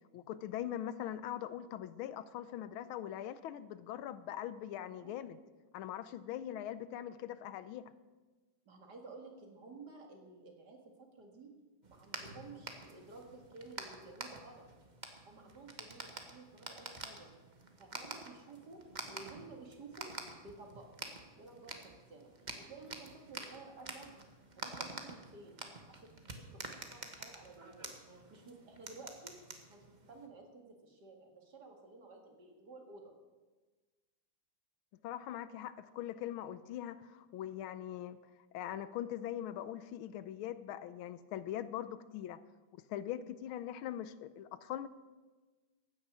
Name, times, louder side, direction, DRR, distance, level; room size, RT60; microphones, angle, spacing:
voice 1, 0.1-5.4 5.7-7.9 35.0-38.2 38.5-42.4 42.9-44.9, left 11 dB, 85° left, 14 dB, 1.5 m, -42 dB
voice 2, 8.7-10.8 11.2-11.5 11.9-14.6 15.2-17.3 17.8-20.1 20.4-21.1 21.4-22.3 22.6-24.3 24.5-25.6 26.0-26.1 26.4-26.6 26.9-27.9 28.3-29.3 29.7-33.1, right 3 dB, 55° right, 2 dB, 2.5 m, -53 dB
sound 1, 11.8-30.3, right 3 dB, 25° right, 1.1 m, -48 dB
15.0 x 9.8 x 6.2 m, 1.3 s
omnidirectional pair, 2.2 m